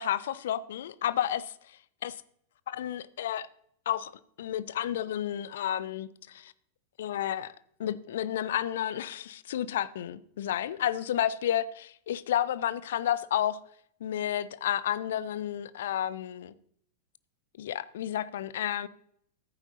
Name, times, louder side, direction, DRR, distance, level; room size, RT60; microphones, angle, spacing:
voice 1, 0.0-1.5 2.0-2.1 2.7-3.5 3.9-4.1 4.4-6.5 7.0-7.5 7.8-13.6 14.0-16.5 17.6-18.9, left 11 dB, 60° left, 0.5 m, -31 dB
14.5 x 8.9 x 2.9 m
figure-of-eight pair, 90°, 0 cm